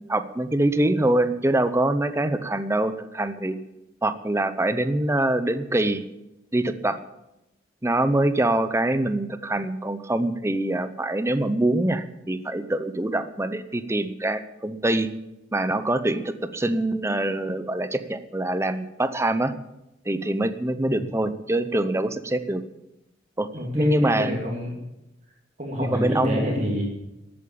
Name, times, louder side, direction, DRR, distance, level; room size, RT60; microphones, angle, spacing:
voice 1, 0.0-3.6 4.0-6.0 6.5-7.0 7.8-15.1 15.5-19.5 20.1-22.6 23.4-23.5 23.7-24.3 25.9-26.5, right 1 dB, 15° right, 11 dB, 0.7 m, -24 dB
voice 2, 23.5-24.8 25.6-26.8, equal, 40° right, -1 dB, 2.7 m, -28 dB
13.5 x 8.7 x 8.8 m, 0.93 s
head